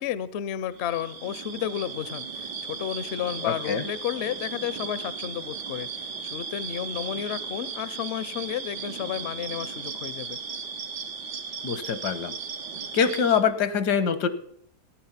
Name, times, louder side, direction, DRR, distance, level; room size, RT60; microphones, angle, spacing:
voice 1, 0.0-10.4, left 10 dB, 60° left, 17 dB, 0.7 m, -32 dB
sound 1, 0.7-13.4, right 5 dB, 85° right, 1.7 m, -36 dB
voice 2, 3.4-3.8 11.6-12.3 12.9-14.3, left 7 dB, 80° left, 13 dB, 1.5 m, -24 dB
15.5 x 9.4 x 5.7 m, 0.69 s
omnidirectional pair, 1.8 m